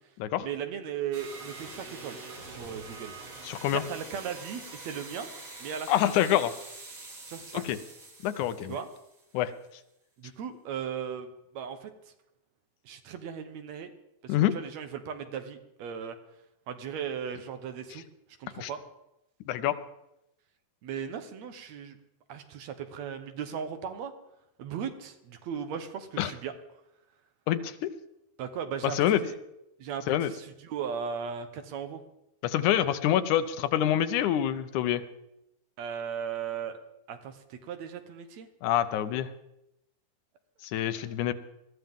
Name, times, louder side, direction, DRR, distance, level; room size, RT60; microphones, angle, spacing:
voice 1, 0.4-2.2 2.5-3.2 3.7-5.3 5.6-5.9 6.2-6.3 7.3-7.6 8.7-8.9 10.2-11.9 12.9-13.9 14.2-16.2 16.7-18.0 18.4-18.8 20.8-22.0 22.3-24.1 24.6-26.5 28.4-29.4 29.8-32.0 35.8-36.8 37.1-38.5 40.9-41.1, right 7 dB, 70° right, 8 dB, 2.2 m, -37 dB
sound 1, 1.1-9.4, right 3 dB, 45° right, 3.3 m, -45 dB
voice 2, 3.4-3.8 5.9-6.5 7.5-7.8 8.2-8.8 9.3-9.5 14.3-14.6 17.9-18.0 18.6-18.7 19.5-19.8 26.2-26.3 27.5-27.9 28.8-29.2 30.1-30.3 32.4-35.0 38.6-39.3 40.6-41.3, left 11 dB, 85° left, 12 dB, 2.2 m, -26 dB
20.5 x 14.0 x 3.6 m, 0.86 s
omnidirectional pair, 3.4 m